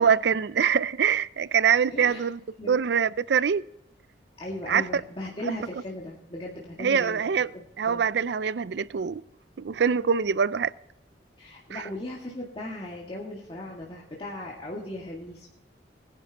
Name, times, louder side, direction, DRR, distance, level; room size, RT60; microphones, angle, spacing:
voice 1, 0.0-2.4 2.7-3.6 4.7-4.8 6.8-7.5 7.8-9.2 9.6-10.7 11.7-11.8, right 7 dB, 70° right, 0.4 m, -24 dB
voice 2, 1.9-2.3 2.6-2.8 4.4-7.2 7.5-8.0 11.4-15.5, left 1 dB, 30° left, 2.0 m, -37 dB
20.0 x 10.5 x 2.9 m
head